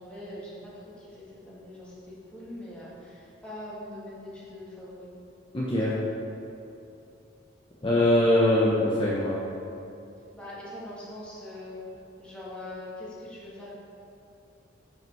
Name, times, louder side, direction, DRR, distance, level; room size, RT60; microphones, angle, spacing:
voice 1, 0.0-5.1 5.8-6.0 10.3-11.8 12.2-13.7, left 1 dB, 5° left, -8 dB, 1.4 m, -42 dB
voice 2, 5.5-5.9 7.8-9.4, left 1 dB, 25° left, -7 dB, 0.6 m, -22 dB
5.6 x 4.6 x 5.4 m, 2.7 s
head